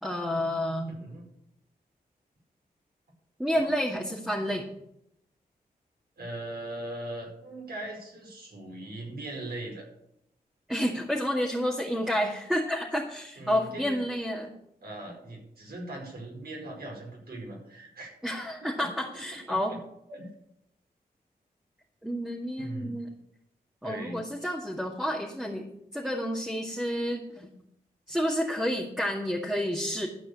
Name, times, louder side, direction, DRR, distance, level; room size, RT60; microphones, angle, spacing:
voice 1, 0.0-1.0 3.4-4.6 10.7-14.5 18.2-19.8 22.0-23.1 23.8-25.7 25.9-27.5 28.1-30.1, equal, 5° right, -3 dB, 2.2 m, -30 dB
voice 2, 0.9-1.3 3.6-3.7 6.2-9.9 13.4-14.0 14.8-18.1 18.8-18.9 19.5-19.8 20.1-20.3 22.6-23.0 23.8-24.2, right 1 dB, 75° right, -2 dB, 5.3 m, -40 dB
13.5 x 5.5 x 8.3 m, 0.78 s
cardioid pair, 50°, 16 cm